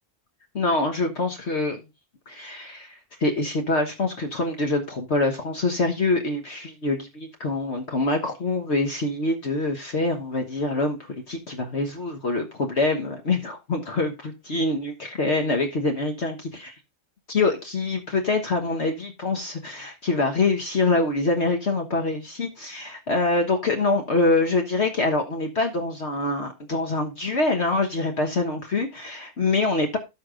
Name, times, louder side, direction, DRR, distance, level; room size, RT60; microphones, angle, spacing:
voice 1, 0.5-1.8 2.3-16.7 17.3-30.0, left 2 dB, 60° left, 1.6 m, -25 dB
13.0 x 5.0 x 3.8 m
omnidirectional pair, 1.3 m